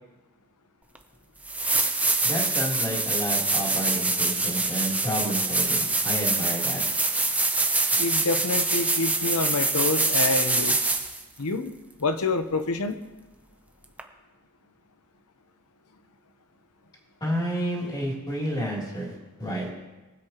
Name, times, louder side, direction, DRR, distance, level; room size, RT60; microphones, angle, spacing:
sound 1, 0.9-1.0 1.4-11.2 14.0-14.1, right 3 dB, 5° right, 0.7 m, -25 dB
voice 1, 2.2-6.8 17.2-19.1 19.4-19.7, equal, 20° left, -4 dB, 3.2 m, -30 dB
voice 2, 8.0-10.8 11.4-11.7 12.0-13.0, left 3 dB, 90° left, 9 dB, 0.9 m, -27 dB
22.5 x 8.0 x 3.0 m, 1.1 s
head